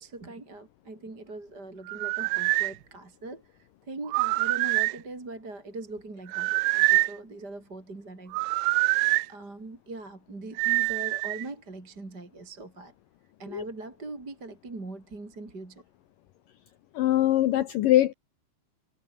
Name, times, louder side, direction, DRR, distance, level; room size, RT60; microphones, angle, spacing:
voice 1, 0.0-8.5 9.3-12.9 13.4-15.8, right 2 dB, 20° right, 4.7 m, -41 dB
sound 1, 1.9-2.7 4.1-5.0 6.3-7.2 8.3-9.3 10.6-11.5, right 24 dB, 85° right, 2.5 m, -25 dB
voice 2, 16.9-18.1, left 14 dB, 85° left, 1.9 m, -22 dB
omnidirectional pair, 5.2 m